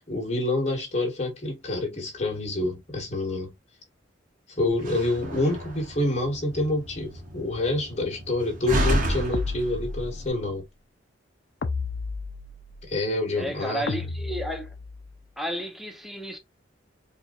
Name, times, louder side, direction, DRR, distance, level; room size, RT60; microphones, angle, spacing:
voice 1, 0.1-3.5 4.5-10.6 12.8-14.0, left 2 dB, 35° left, 1.5 m, -27 dB
Slam, 4.7-10.3, equal, 45° right, 1.2 m, -31 dB
sound 1, 9.3-10.4 11.6-12.9 13.9-15.1, left 4 dB, 65° left, 0.5 m, -33 dB
voice 2, 13.4-14.7 15.4-16.4, right 1 dB, ahead, 0.7 m, -32 dB
4.3 x 2.7 x 2.4 m
head